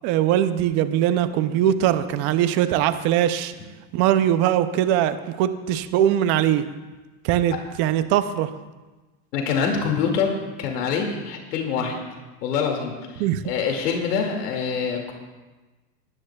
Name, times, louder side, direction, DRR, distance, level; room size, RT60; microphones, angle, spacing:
voice 1, 0.0-3.5 3.9-6.6 7.2-8.5 13.2-13.4, right 11 dB, 30° right, 12 dB, 0.3 m, -21 dB
voice 2, 9.3-12.0 12.4-15.1, left 6 dB, 80° left, 2 dB, 2.2 m, -25 dB
19.5 x 13.0 x 2.2 m, 1.2 s
supercardioid pair, 140°, 47 cm